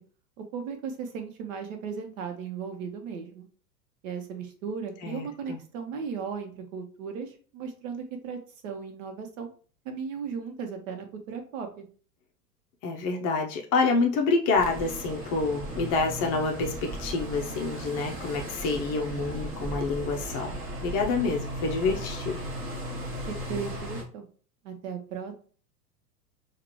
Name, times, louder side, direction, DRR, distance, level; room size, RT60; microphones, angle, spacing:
voice 1, 0.4-3.5 4.0-9.5 9.8-11.8 23.3-24.2 24.6-25.3, right 6 dB, 55° right, 5 dB, 1.1 m, -36 dB
voice 2, 5.0-5.6 12.8-20.5 20.8-22.4, left 3 dB, 30° left, 2 dB, 0.6 m, -27 dB
sound 1, 14.5-24.0, right 1 dB, 25° right, 1.2 m, -36 dB
4.8 x 2.5 x 3.0 m, 0.41 s
figure-of-eight pair, 90°, 48 cm